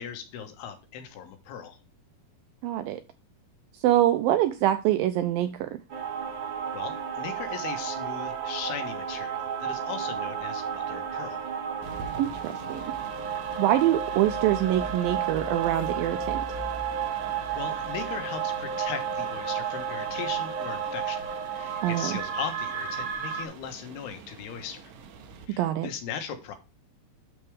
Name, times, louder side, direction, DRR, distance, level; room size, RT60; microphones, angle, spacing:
voice 1, 0.0-1.8 6.7-11.4 17.5-21.2 21.5-24.9 25.5-26.6, left 8 dB, 80° left, 3.2 m, -38 dB
voice 2, 2.6-3.0 3.8-5.8 12.2-12.9 13.6-16.4 21.8-22.2 25.6-25.9, right 13 dB, 80° right, 2.1 m, -25 dB
sound 1, 5.9-23.4, right 7 dB, 40° right, 2.3 m, -32 dB
sound 2, 11.8-25.5, right 3 dB, 65° right, 2.6 m, -44 dB
12.0 x 4.4 x 3.5 m
omnidirectional pair, 4.6 m